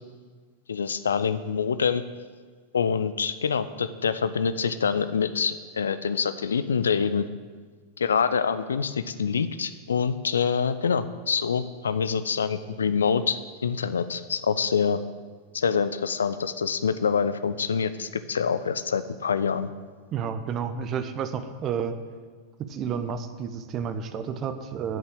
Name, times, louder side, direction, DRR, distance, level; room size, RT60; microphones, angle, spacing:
voice 1, 0.7-2.0 2.7-7.3 8.0-15.0 15.5-19.7, left 6 dB, 70° left, 13 dB, 0.5 m, -26 dB
voice 2, 20.1-22.0 22.6-25.0, right 7 dB, 30° right, 10 dB, 0.9 m, -31 dB
8.1 x 7.1 x 8.6 m, 1.5 s
figure-of-eight pair, 90°, 0 cm